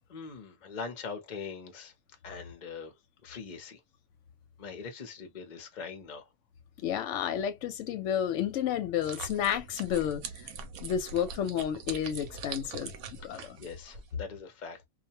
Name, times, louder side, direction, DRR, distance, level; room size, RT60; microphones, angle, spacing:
voice 1, 0.1-1.9 2.2-2.9 3.2-3.8 4.6-6.3 13.3-14.9, left 5 dB, 45° left, 0.6 m, -42 dB
voice 2, 6.8-10.2 10.8-12.9 13.2-13.6, left 9 dB, 70° left, 0.9 m, -31 dB
sound 1, 9.0-14.1, right 5 dB, 85° right, 1.1 m, -43 dB
2.4 x 2.1 x 2.7 m
omnidirectional pair, 1.5 m